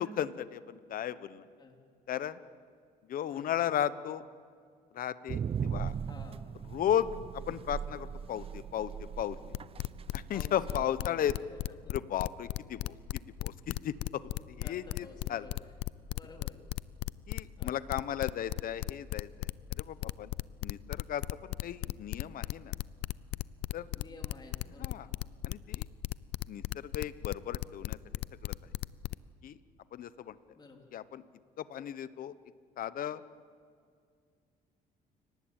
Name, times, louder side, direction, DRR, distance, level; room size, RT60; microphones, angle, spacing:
voice 1, 0.0-1.4 2.1-2.4 3.1-4.2 4.9-5.9 6.7-9.4 10.1-11.3 11.9-14.2 14.5-15.5 17.3-20.3 20.6-22.7 23.7-23.9 24.8-25.1 25.4-25.9 26.5-28.0 28.4-28.5 29.4-29.6 29.9-30.4 30.9-31.2 31.6-32.4 32.8-33.2, left 10 dB, 55° left, 15 dB, 1.1 m, -35 dB
voice 2, 3.3-3.7 6.0-6.5 10.3-11.9 14.6-15.6 16.1-16.6 17.6-17.8 24.0-25.2 30.6-30.9, left 3 dB, 25° left, 2 dB, 3.7 m, -52 dB
sound 1, 5.3-10.8, right 7 dB, 35° right, 0.6 m, -39 dB
sound 2, 9.5-29.1, left 18 dB, 80° left, 0.6 m, -36 dB
29.5 x 19.0 x 9.1 m, 2.2 s
cardioid pair, 110°, 17 cm